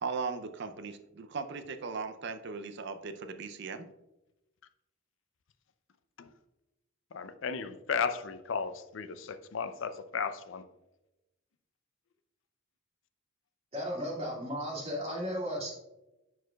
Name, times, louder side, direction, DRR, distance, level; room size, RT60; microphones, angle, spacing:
voice 1, 0.0-3.9, right 4 dB, 55° right, 9 dB, 0.5 m, -38 dB
voice 2, 7.1-10.6, left 6 dB, 65° left, 11 dB, 0.5 m, -35 dB
voice 3, 13.7-15.7, equal, 30° right, -4 dB, 2.1 m, -35 dB
10.5 x 4.7 x 2.3 m, 0.97 s
head